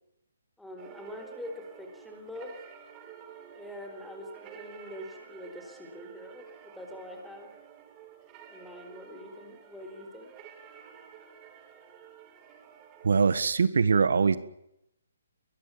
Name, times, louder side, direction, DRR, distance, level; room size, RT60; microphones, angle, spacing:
voice 1, 0.6-2.5 3.5-7.5 8.5-10.3, left 1 dB, ahead, 3 dB, 4.6 m, -44 dB
sound 1, 0.8-13.1, right 8 dB, 20° right, 3.2 m, -50 dB
voice 2, 13.0-14.4, right 5 dB, 75° right, 14 dB, 1.5 m, -22 dB
23.5 x 21.0 x 7.4 m, 0.80 s
hypercardioid pair, 160°, 0 cm